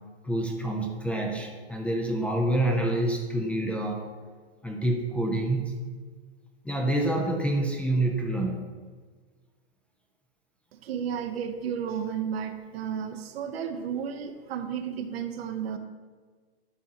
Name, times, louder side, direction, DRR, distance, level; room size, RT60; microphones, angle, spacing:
voice 1, 0.2-4.0 4.6-5.8 6.6-8.6, right 1 dB, 5° left, 1 dB, 0.4 m, -27 dB
voice 2, 10.7-15.8, right 8 dB, 75° right, 8 dB, 0.8 m, -33 dB
11.0 x 4.5 x 2.8 m, 1.5 s
hypercardioid pair, 135°, 31 cm